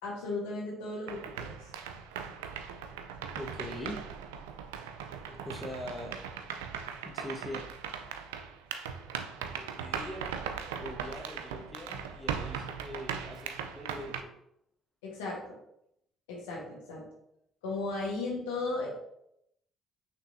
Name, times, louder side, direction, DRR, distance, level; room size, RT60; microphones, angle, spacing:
voice 1, 0.0-1.5 15.0-15.4 16.3-17.0 17.6-18.9, left 3 dB, 90° left, -3 dB, 1.2 m, -35 dB
sound 1, 1.1-14.2, right 7 dB, 90° right, 0.3 m, -39 dB
voice 2, 3.4-4.0 5.3-6.2 7.0-7.7 9.4-10.3 10.8-14.3, left 1 dB, 20° left, 2 dB, 1.0 m, -42 dB
5.8 x 3.1 x 2.6 m, 0.78 s
hypercardioid pair, 55°, 0 cm